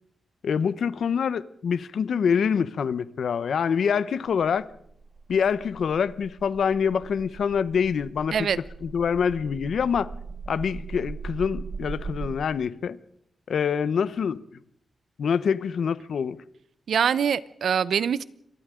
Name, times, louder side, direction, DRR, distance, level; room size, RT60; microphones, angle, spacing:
voice 1, 0.4-4.7 5.3-8.3 8.8-10.1 10.5-13.0 13.5-14.4 15.2-16.4, left 7 dB, 65° left, 0.8 m, -25 dB
sound 1, 4.6-12.3, right 4 dB, 25° right, 1.9 m, -39 dB
voice 2, 16.9-18.2, right 7 dB, 70° right, 0.8 m, -24 dB
28.5 x 25.5 x 3.8 m
wide cardioid pair, 175°, 0 cm